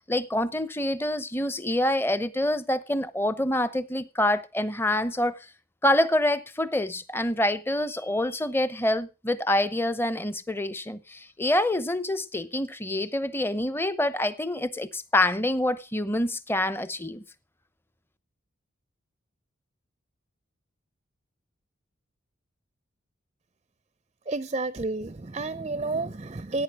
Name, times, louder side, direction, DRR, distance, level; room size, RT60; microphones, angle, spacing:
voice 1, 0.1-5.5 5.8-17.2, left 1 dB, 10° left, 0.8 m, -26 dB
voice 2, 24.3-26.6, right 3 dB, 30° right, 0.5 m, -30 dB
16.0 x 9.1 x 4.7 m
head